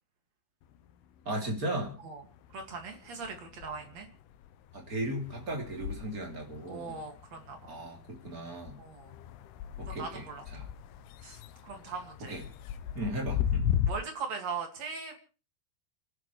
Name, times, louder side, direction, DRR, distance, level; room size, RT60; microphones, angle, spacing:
sound 1, 0.6-1.9 2.2-13.9, left 9 dB, 75° left, 2.5 m, -37 dB
voice 1, 1.2-1.9 4.7-7.0 7.7-8.7 9.8-10.2 10.5-10.6 12.3-12.4 12.9-13.7, right 1 dB, 25° right, 1 dB, 2.7 m, -36 dB
voice 2, 2.5-4.1 6.7-7.7 8.8-9.1 9.9-10.4 11.2-12.4 13.9-15.2, right 5 dB, 45° right, 4 dB, 2.8 m, -40 dB
30.0 x 12.5 x 3.3 m, 0.37 s
omnidirectional pair, 5.4 m